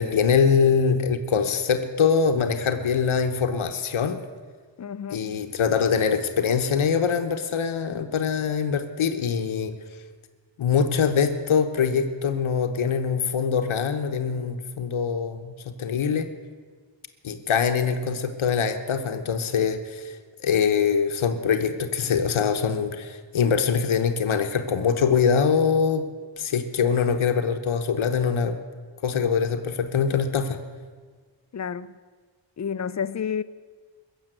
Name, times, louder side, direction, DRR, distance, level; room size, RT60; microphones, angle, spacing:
voice 1, 0.0-4.2 5.1-9.7 10.6-16.3 17.2-26.0 26.4-28.6 29.0-30.6, left 6 dB, 85° left, 7 dB, 1.2 m, -23 dB
voice 2, 4.8-5.4 31.5-31.9 32.6-33.4, left 7 dB, 35° left, 15 dB, 0.5 m, -30 dB
21.5 x 7.3 x 9.1 m, 1.5 s
wide cardioid pair, 165°, 47 cm